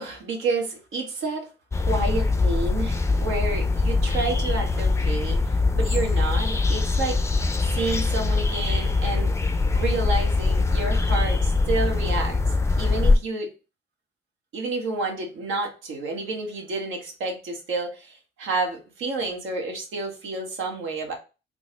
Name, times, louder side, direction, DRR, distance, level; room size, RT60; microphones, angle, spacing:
voice 1, 0.0-1.5 1.8-7.2 7.6-9.3 9.7-12.4 12.8-13.5 14.5-21.1, right 3 dB, 85° right, 2 dB, 1.2 m, -30 dB
sound 1, 1.7-13.2, left 3 dB, 15° left, 0.4 m, -22 dB
3.9 x 2.0 x 3.6 m, 0.31 s
cardioid pair, 90°, 20 cm